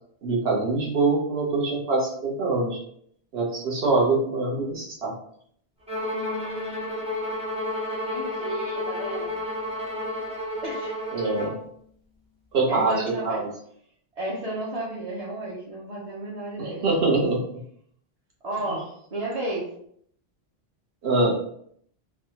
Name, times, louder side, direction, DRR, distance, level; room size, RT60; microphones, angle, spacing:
voice 1, 0.2-2.8 3.3-5.1 11.1-11.6 12.5-13.5 16.6-17.4 18.7-18.8 21.0-21.3, right 3 dB, 70° right, -3 dB, 1.2 m, -24 dB
Bowed string instrument, 5.9-11.6, left 1 dB, 10° right, 0.5 m, -31 dB
voice 2, 6.1-7.1 7.5-9.3 10.6-11.0 12.7-13.4 14.1-16.8 18.4-19.7, right 1 dB, 40° right, -7 dB, 0.7 m, -33 dB
3.3 x 2.3 x 2.8 m, 0.66 s
omnidirectional pair, 1.1 m